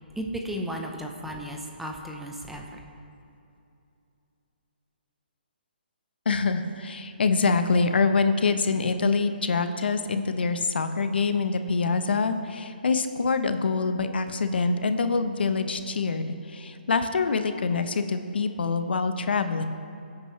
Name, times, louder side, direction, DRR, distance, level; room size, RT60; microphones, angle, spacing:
voice 1, 0.1-2.8, equal, 5° right, 1 dB, 0.9 m, -34 dB
voice 2, 6.3-19.6, left 4 dB, 75° left, 8 dB, 1.0 m, -25 dB
22.0 x 8.7 x 3.3 m, 2.7 s
hypercardioid pair, 150°, 6 cm